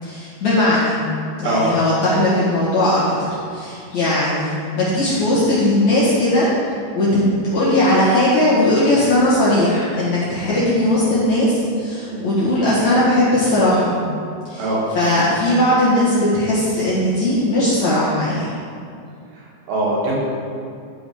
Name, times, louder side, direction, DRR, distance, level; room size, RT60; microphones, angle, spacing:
voice 1, 0.0-1.0 1.4-6.5 6.9-7.2 7.5-13.9 14.5-14.7 14.9-18.5, left 1 dB, 50° left, -11 dB, 2.5 m, -18 dB
voice 2, 19.7-20.2, right 2 dB, 70° right, -5 dB, 4.1 m, -21 dB
13.0 x 4.9 x 5.1 m, 2.4 s
omnidirectional pair, 5.2 m